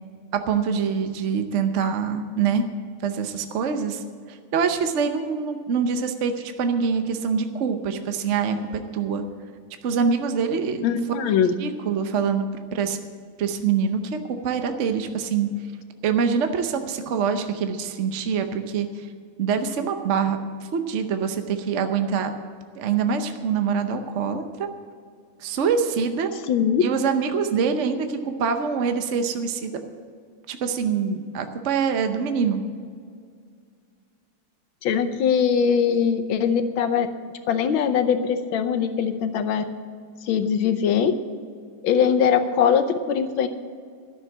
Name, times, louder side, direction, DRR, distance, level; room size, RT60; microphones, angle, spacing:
voice 1, 0.3-2.6 3.0-4.0 4.3-9.2 9.8-10.9 11.6-13.0 13.4-15.5 16.0-19.1 19.4-20.4 20.7-22.3 22.7-24.7 25.4-26.3 26.8-29.7 30.5-32.6, right 6 dB, 60° right, 7 dB, 0.8 m, -25 dB
voice 2, 10.8-11.5 26.5-26.8 34.8-37.1 37.5-39.6 40.2-41.1 41.8-43.5, left 7 dB, 80° left, 9 dB, 1.6 m, -21 dB
12.5 x 6.9 x 8.5 m, 2.1 s
omnidirectional pair, 2.2 m